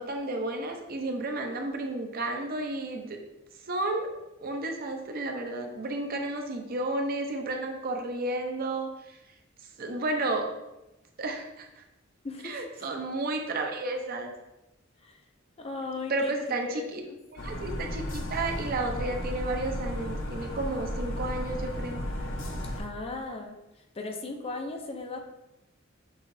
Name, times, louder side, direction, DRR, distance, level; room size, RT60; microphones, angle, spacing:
voice 1, 0.0-3.2 3.7-4.1 4.4-9.1 9.8-10.4 11.2-11.8 12.4-14.3 16.1-17.0 17.3-22.0, right 2 dB, 45° right, 3 dB, 0.6 m, -32 dB
voice 2, 12.2-12.9 15.0-15.2 15.6-16.4 16.6-17.2 22.8-25.2, left 3 dB, 30° left, 3 dB, 0.4 m, -37 dB
sound 1, 17.4-22.8, equal, 65° left, 0.7 m, -34 dB
6.2 x 3.0 x 2.6 m, 0.95 s
head